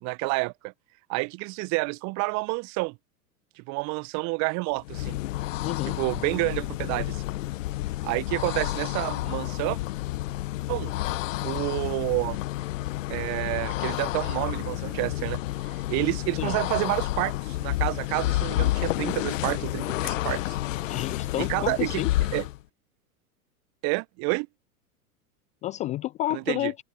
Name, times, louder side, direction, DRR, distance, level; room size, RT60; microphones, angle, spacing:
voice 1, 0.0-0.7 1.1-3.0 3.6-5.2 5.8-7.2 8.0-9.8 10.7-10.9 11.4-12.4 13.1-20.6 21.4-22.0 22.3-22.5 23.8-24.5 26.3-26.7, right 29 dB, 40° right, 1.0 m, -29 dB
sound 1, 4.8-22.6, left 16 dB, 60° left, 1.3 m, -30 dB
voice 2, 5.6-6.0 16.4-16.6 20.9-22.1 25.6-26.8, left 14 dB, 15° left, 0.4 m, -30 dB
open air
figure-of-eight pair, 95°, 45 cm